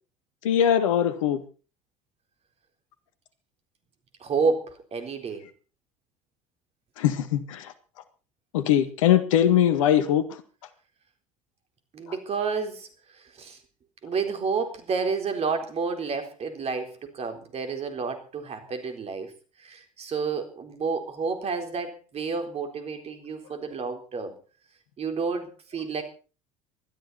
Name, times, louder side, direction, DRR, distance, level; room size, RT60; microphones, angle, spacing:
voice 1, 0.4-1.4 7.0-7.7 8.5-10.2, left 10 dB, 75° left, 11 dB, 1.8 m, -21 dB
voice 2, 4.2-5.4 11.9-12.9 13.4-13.6 14.0-19.3 19.6-24.4 25.0-26.0, right 5 dB, 40° right, 6 dB, 4.0 m, -30 dB
20.0 x 13.0 x 4.2 m, 0.37 s
hypercardioid pair, 65°, 17 cm